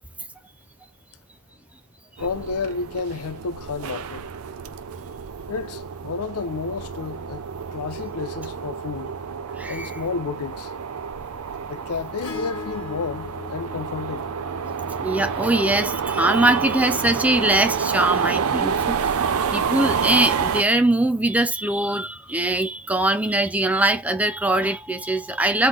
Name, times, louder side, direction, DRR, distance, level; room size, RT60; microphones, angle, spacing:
voice 1, 2.2-4.3 5.5-9.1 9.7-10.7 11.7-14.3, left 4 dB, 80° left, 0.5 m, -31 dB
sound 1, 2.2-20.6, right 6 dB, 70° right, 0.5 m, -28 dB
voice 2, 9.6-10.0 15.0-19.2 19.5-25.7, right 2 dB, 5° right, 0.4 m, -22 dB
Acoustic guitar / Strum, 12.2-16.8 18.7-18.8, left 5 dB, 65° left, 1.2 m, -40 dB
3.8 x 3.1 x 3.7 m
head